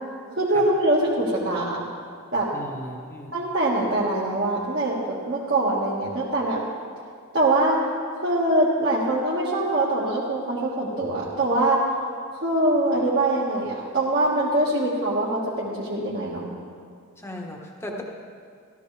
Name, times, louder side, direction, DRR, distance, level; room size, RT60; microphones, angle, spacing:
voice 1, 0.4-1.8 2.3-2.5 3.3-6.6 7.3-7.8 8.2-11.8 12.4-16.5, right 2 dB, 55° right, -6 dB, 1.8 m, -23 dB
voice 2, 2.5-3.3 17.2-18.0, left 1 dB, 10° left, 0 dB, 1.3 m, -36 dB
16.0 x 13.5 x 3.4 m, 2.2 s
head